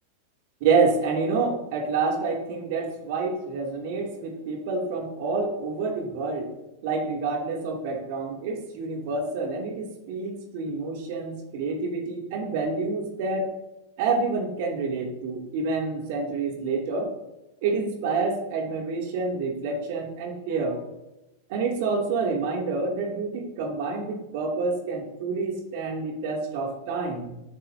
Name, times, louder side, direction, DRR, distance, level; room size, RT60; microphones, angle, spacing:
voice 1, 0.6-6.5 6.8-13.6 14.0-17.1 17.6-20.8 21.5-27.3, right 4 dB, 50° right, 1 dB, 2.8 m, -28 dB
19.0 x 9.9 x 2.8 m, 0.95 s
figure-of-eight pair, 90°, 0 cm